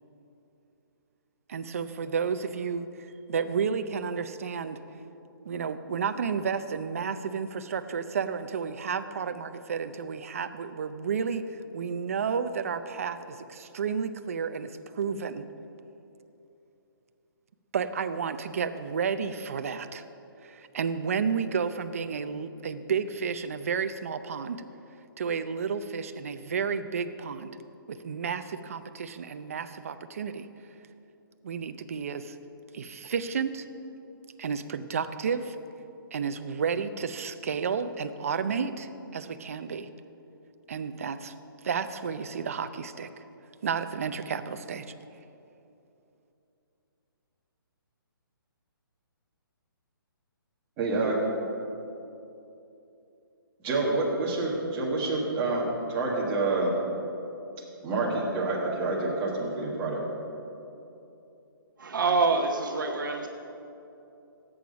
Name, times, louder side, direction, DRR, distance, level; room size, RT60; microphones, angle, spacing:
voice 1, 1.5-4.8 5.5-15.4 17.7-20.0 20.4-24.6 25.2-27.6 27.9-30.5 31.4-32.4 32.7-33.7 34.4-35.6 36.1-39.9 40.7-41.3 41.6-43.2 43.6-44.9, right 6 dB, 40° right, 10 dB, 0.5 m, -31 dB
voice 2, 50.8-51.2 53.6-56.7 57.8-60.0, right 2 dB, 15° right, -4 dB, 1.7 m, -28 dB
voice 3, 61.8-63.3, right 4 dB, 60° right, 3 dB, 1.0 m, -26 dB
16.0 x 8.6 x 5.2 m, 2.9 s
hypercardioid pair, 175°, 12 cm